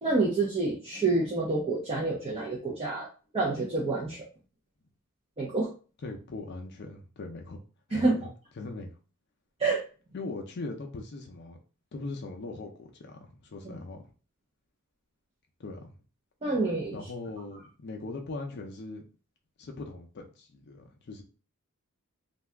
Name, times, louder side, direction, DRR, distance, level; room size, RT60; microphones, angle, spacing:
voice 1, 0.0-3.1 3.3-4.2 5.4-5.7 7.9-8.3 9.6-9.8 16.4-17.0, right 3 dB, 25° right, -4 dB, 0.5 m, -28 dB
voice 2, 6.0-7.6 7.9-8.1 8.6-8.9 10.1-11.6 11.9-14.0 15.6-15.9 16.9-19.0 19.6-21.2, left 3 dB, 50° left, 2 dB, 0.5 m, -40 dB
2.6 x 2.3 x 3.3 m, 0.36 s
head